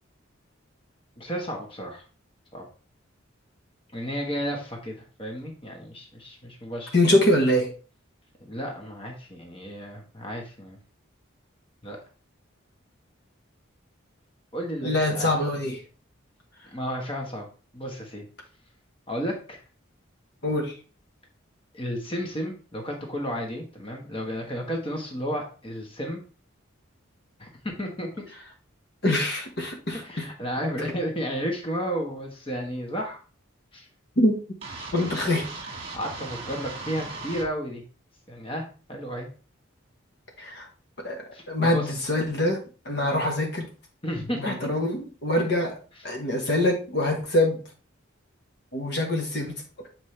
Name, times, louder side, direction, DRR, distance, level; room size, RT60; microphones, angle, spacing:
voice 1, 1.2-2.0 2.5-2.7 3.9-6.9 8.4-10.8 11.8-12.0 14.5-15.3 16.7-17.4 17.7-18.2 19.1-19.6 21.7-26.2 27.4-28.1 30.0-33.2 33.7-33.9 35.9-37.8 38.3-39.3 41.3-41.9 43.0-43.2 44.0-44.7, equal, 25° left, 1 dB, 1.2 m, -32 dB
voice 2, 6.9-7.7 14.8-15.8 20.4-20.7 29.0-30.3 34.2-34.3 34.9-35.5 40.4-40.7 41.0-42.6 42.8-43.7 44.4-45.7 46.0-47.6 48.7-49.6, left 1 dB, 55° left, 2 dB, 1.1 m, -24 dB
sound 1, 34.6-37.5, right 3 dB, 30° right, 1.6 m, -38 dB
7.6 x 4.4 x 3.2 m, 0.36 s
head